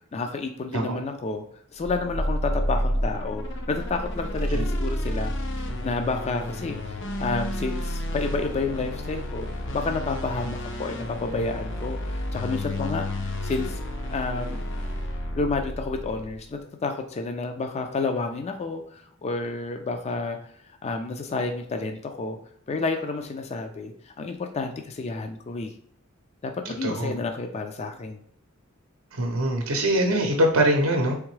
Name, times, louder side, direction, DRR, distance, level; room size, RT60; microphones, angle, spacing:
voice 1, 0.1-1.4 1.7-13.8 14.1-14.6 15.4-20.4 20.8-22.4 22.7-25.7 26.4-28.2, left 3 dB, 30° left, 6 dB, 0.4 m, -30 dB
sound 1, 1.8-16.4, equal, 60° left, 0.7 m, -30 dB
voice 2, 26.6-27.2 29.1-31.2, right 1 dB, 70° right, 3 dB, 0.6 m, -23 dB
3.6 x 3.5 x 3.2 m, 0.66 s
head